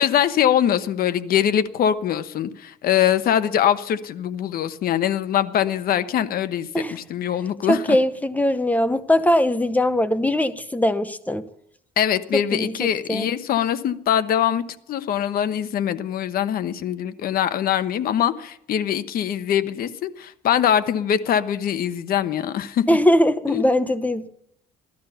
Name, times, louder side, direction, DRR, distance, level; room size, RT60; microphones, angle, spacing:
voice 1, 0.0-8.0 12.0-14.6 14.9-22.8 23.5-23.6, left 10 dB, 60° left, 12 dB, 1.0 m, -23 dB
voice 2, 7.7-11.4 12.3-12.7 13.1-13.3 22.9-24.3, left 1 dB, 10° left, 12 dB, 0.8 m, -20 dB
16.0 x 12.0 x 5.7 m, 0.70 s
cardioid pair, 110°, 17 cm